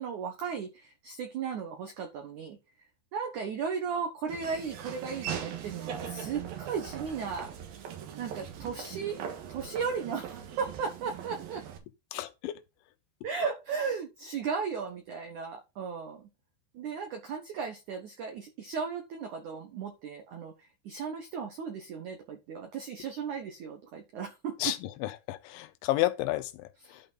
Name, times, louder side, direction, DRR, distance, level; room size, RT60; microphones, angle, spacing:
voice 1, 0.0-2.6 3.1-7.5 8.2-9.2 9.5-11.6 13.2-16.3 16.7-24.8 26.8-27.0, right 6 dB, 80° right, 1.7 m, -36 dB
Laughter / Walk footsteps, 4.3-11.8, right 8 dB, 60° right, 2.9 m, -40 dB
voice 2, 12.1-12.6 24.6-26.7, left 16 dB, 85° left, 3.2 m, -31 dB
12.0 x 5.3 x 3.9 m
omnidirectional pair, 5.3 m